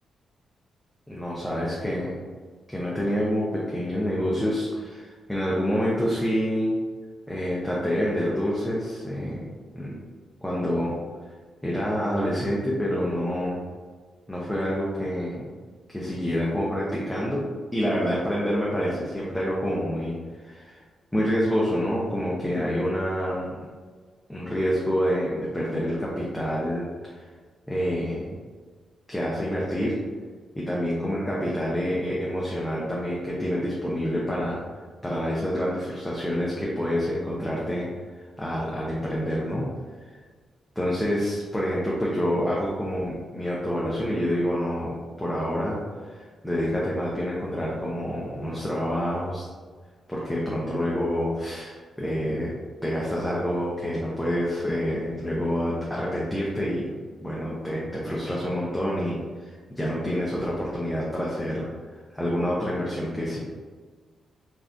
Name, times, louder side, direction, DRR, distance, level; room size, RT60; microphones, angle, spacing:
voice 1, 1.1-2.2 2.7-6.8 7.3-9.5 9.7-9.9 10.4-10.9 11.6-13.6 14.3-15.4 15.9-17.4 17.7-20.8 21.1-23.5 24.3-26.9 27.7-28.3 29.1-30.0 30.6-34.6 35.0-37.9 38.4-39.7 40.8-49.5 50.1-52.5 52.8-56.9 57.2-61.7 62.1-63.4, equal, 5° left, -6 dB, 0.6 m, -27 dB
3.3 x 2.5 x 2.5 m, 1.5 s
cardioid pair, 90°, 0 cm